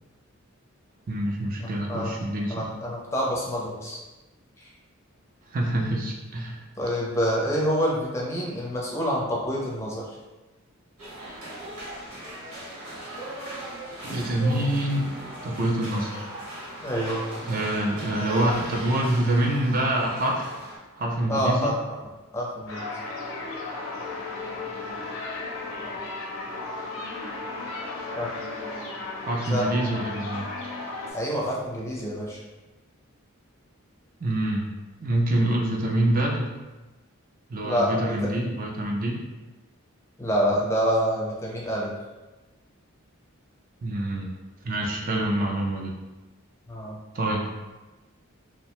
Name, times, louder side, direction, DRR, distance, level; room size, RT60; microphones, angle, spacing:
voice 1, 1.1-2.7 5.5-6.6 14.1-15.1 15.4-16.3 17.5-20.5 21.0-21.7 29.3-30.4 34.2-34.6 35.0-36.5 37.5-39.2 43.8-44.3 44.6-45.9 47.1-47.4, right 1 dB, 40° right, 0 dB, 0.4 m, -26 dB
voice 2, 1.6-2.1 2.5-4.0 4.6-4.7 6.8-10.1 16.8-17.3 21.3-21.8 22.3-22.9 28.2-28.3 29.4-29.7 31.1-32.4 37.6-38.2 40.2-41.9 46.7-47.0, equal, 15° left, -4 dB, 0.5 m, -27 dB
sound 1, 11.0-20.8, right 1 dB, 90° right, 1.0 m, -38 dB
sound 2, 22.7-31.1, left 3 dB, 70° left, 0.5 m, -35 dB
2.7 x 2.1 x 2.9 m, 1.1 s
head